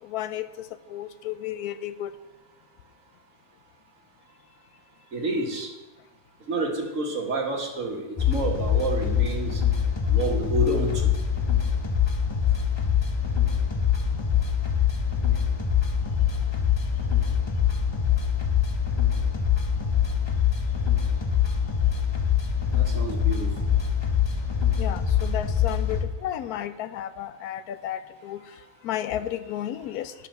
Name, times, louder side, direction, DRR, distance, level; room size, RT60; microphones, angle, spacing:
voice 1, 0.0-2.1 24.8-30.1, left 11 dB, 75° left, 12 dB, 1.1 m, -33 dB
voice 2, 5.1-5.7 6.5-9.6 10.1-11.1 22.8-23.5, right 2 dB, 55° right, 0 dB, 1.8 m, -29 dB
sound 1, 8.2-26.0, left 8 dB, 40° left, 0.3 m, -24 dB
10.0 x 5.7 x 6.2 m, 1.1 s
omnidirectional pair, 1.7 m